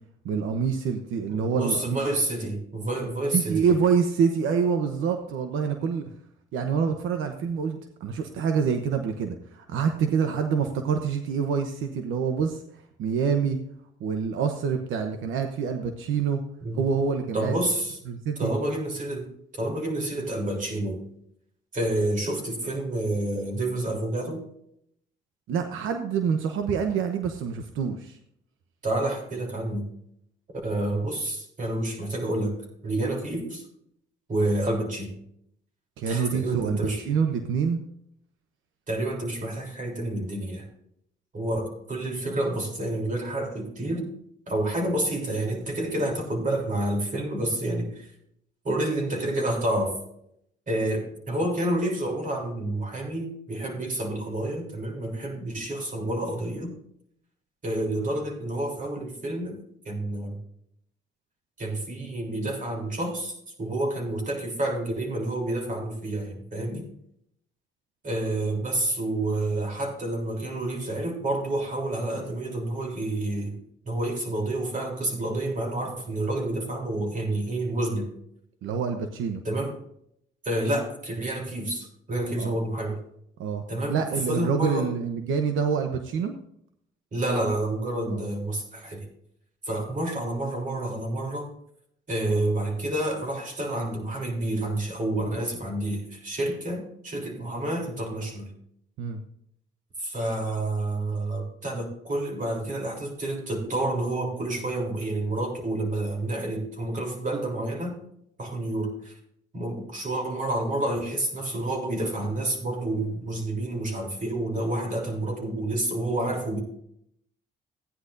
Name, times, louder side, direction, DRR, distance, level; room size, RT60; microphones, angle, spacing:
voice 1, 0.2-2.0 3.3-6.0 6.5-12.6 13.0-13.6 14.0-16.4 16.7-17.5 18.1-18.5 25.5-28.2 36.0-37.8 78.6-79.4 82.4-82.6 83.4-83.6 83.9-86.3 88.1-88.3 99.0-99.2, right 6 dB, 85° right, 5 dB, 0.9 m, -26 dB
voice 2, 1.3-3.7 16.6-16.8 17.3-18.0 18.4-21.0 21.7-24.5 28.8-29.9 30.5-32.6 32.8-33.7 34.3-35.2 36.1-37.0 38.9-40.7 41.3-44.1 44.5-48.1 48.6-50.0 50.7-56.8 57.6-59.6 59.9-60.4 61.6-66.9 68.0-73.6 73.9-78.1 79.4-79.8 80.4-83.0 83.7-84.9 87.1-89.1 89.7-91.5 92.1-98.5 100.0-108.0 108.4-109.2 109.5-116.6, right 1 dB, 40° right, 1 dB, 3.4 m, -29 dB
15.5 x 9.8 x 2.6 m, 0.72 s
cardioid pair, 90°, 20 cm